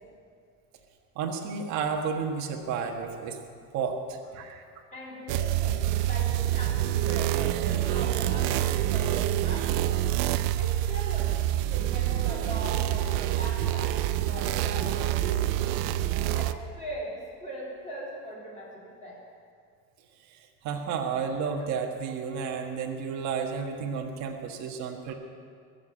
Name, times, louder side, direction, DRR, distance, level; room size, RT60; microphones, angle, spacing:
voice 1, 1.1-3.4 3.7-4.6 20.6-25.1, right 6 dB, 35° right, 1 dB, 1.6 m, -32 dB
voice 2, 4.9-10.0 10.6-15.8 16.3-19.2, equal, 15° left, -6 dB, 3.5 m, -40 dB
sound 1, 5.3-16.5, right 13 dB, 80° right, 0.8 m, -27 dB
21.5 x 7.3 x 8.8 m, 2.2 s
cardioid pair, 170°, 47 cm